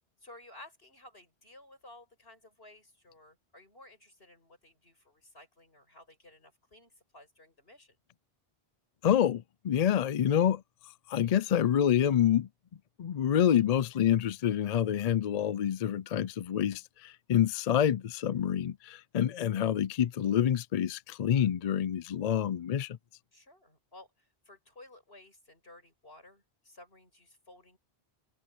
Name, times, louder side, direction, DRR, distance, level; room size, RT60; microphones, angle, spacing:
voice 1, 0.2-8.0 23.3-27.8, left 1 dB, 70° left, 7.9 m, -55 dB
voice 2, 9.0-10.6 11.1-12.5 13.0-23.0, left 10 dB, 55° left, 0.4 m, -27 dB
omnidirectional pair, 1.1 m